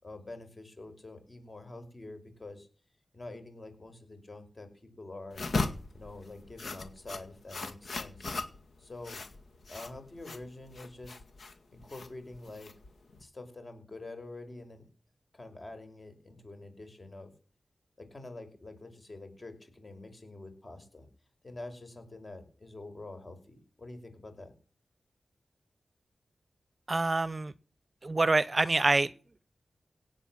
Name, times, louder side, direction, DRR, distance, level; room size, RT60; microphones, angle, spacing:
voice 1, 0.0-2.7 3.1-5.4 5.9-8.3 8.8-9.2 9.7-11.2 11.7-12.7 13.2-14.8 15.3-17.3 18.0-21.1 21.4-24.5, left 2 dB, 40° left, 7 dB, 5.3 m, -46 dB
sound 1, 5.3-13.2, left 3 dB, 70° left, 2.1 m, -38 dB
voice 2, 26.9-27.5 28.0-29.1, right 2 dB, 35° right, 19 dB, 0.8 m, -26 dB
17.5 x 8.1 x 7.5 m, 0.40 s
cardioid pair, 60°, 0 cm